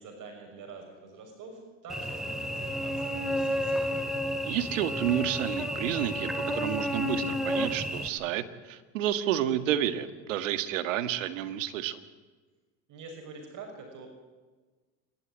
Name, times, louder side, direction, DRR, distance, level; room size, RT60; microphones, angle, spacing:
voice 1, 0.0-4.0 12.9-14.1, right 4 dB, 50° right, 3 dB, 5.9 m, -46 dB
Cricket / Buzz, 1.9-8.1, equal, ahead, 2.7 m, -31 dB
voice 2, 4.4-12.0, right 11 dB, 90° right, 11 dB, 1.7 m, -30 dB
28.0 x 12.5 x 9.8 m, 1.3 s
supercardioid pair, 95°, 37 cm